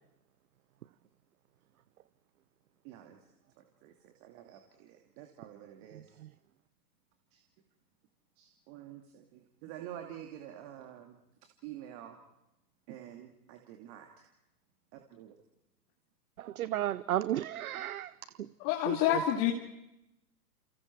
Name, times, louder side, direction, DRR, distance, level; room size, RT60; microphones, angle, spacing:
voice 1, 2.8-3.2 3.6-6.2 7.3-7.4 8.4-11.2 11.4-12.2 12.9-14.3 14.9-15.4, right 11 dB, 40° right, 4 dB, 2.7 m, -48 dB
voice 2, 5.9-6.3 16.4-18.1 18.4-18.5 18.9-19.2, right 12 dB, 60° right, 18 dB, 0.9 m, -34 dB
voice 3, 18.6-19.5, left 11 dB, 35° left, 1 dB, 2.7 m, -27 dB
30.0 x 29.0 x 4.7 m, 0.89 s
figure-of-eight pair, 115°, 50 cm